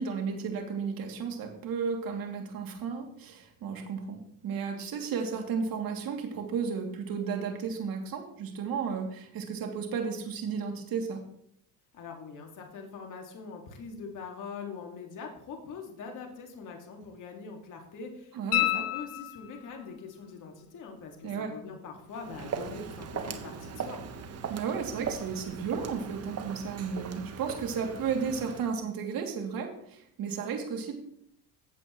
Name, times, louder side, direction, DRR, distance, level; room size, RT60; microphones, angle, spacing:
voice 1, 0.0-11.2 18.3-18.8 21.2-21.5 24.5-30.9, right 6 dB, 50° right, 2 dB, 2.8 m, -33 dB
voice 2, 11.9-24.0, left 5 dB, 40° left, 2 dB, 2.2 m, -43 dB
sound 1, 18.5-19.8 22.6-22.7, left 15 dB, 90° left, 1.1 m, -30 dB
Walk footsteps, 22.1-28.7, right 6 dB, 35° right, 1.3 m, -39 dB
15.0 x 7.9 x 3.1 m, 0.72 s
supercardioid pair, 100°, 45 cm